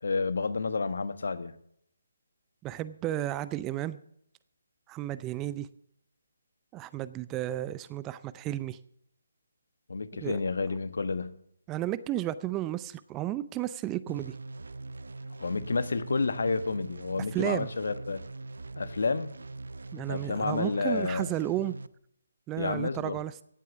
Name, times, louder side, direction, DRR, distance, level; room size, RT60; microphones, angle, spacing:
voice 1, 0.0-1.5 9.9-11.4 15.4-18.2 18.8-19.3 20.1-21.3 22.6-23.2, left 4 dB, 70° left, 13 dB, 1.2 m, -30 dB
voice 2, 2.6-4.0 4.9-5.7 6.7-8.8 10.2-10.4 11.7-14.3 17.3-17.7 19.9-21.8 22.5-23.3, right 14 dB, 15° right, 16 dB, 0.5 m, -33 dB
sound 1, 14.1-21.9, right 2 dB, 75° right, 0.7 m, -42 dB
16.5 x 8.4 x 7.0 m, 0.70 s
figure-of-eight pair, 150°, 0 cm